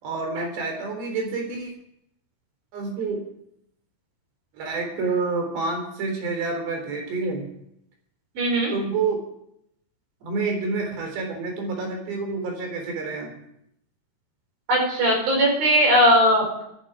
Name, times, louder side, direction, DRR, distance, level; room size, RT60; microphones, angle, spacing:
voice 1, 0.0-1.7 2.7-3.2 4.5-7.4 8.7-9.2 10.2-13.3, right 4 dB, 90° right, 3 dB, 5.8 m, -28 dB
voice 2, 8.4-8.7 14.7-16.6, equal, 60° right, 0 dB, 6.8 m, -19 dB
25.0 x 11.0 x 4.9 m, 0.76 s
omnidirectional pair, 4.8 m